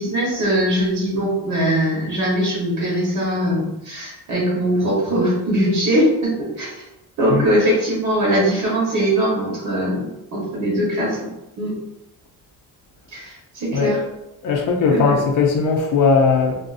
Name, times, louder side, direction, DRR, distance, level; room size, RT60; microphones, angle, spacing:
voice 1, 0.0-6.8 7.2-11.3 11.6-11.7 13.1-14.0 14.9-15.1, equal, 55° right, -5 dB, 1.0 m, -21 dB
voice 2, 14.4-16.6, left 5 dB, 60° left, 1 dB, 0.5 m, -18 dB
2.4 x 2.4 x 2.4 m, 0.90 s
cardioid pair, 175°, 37 cm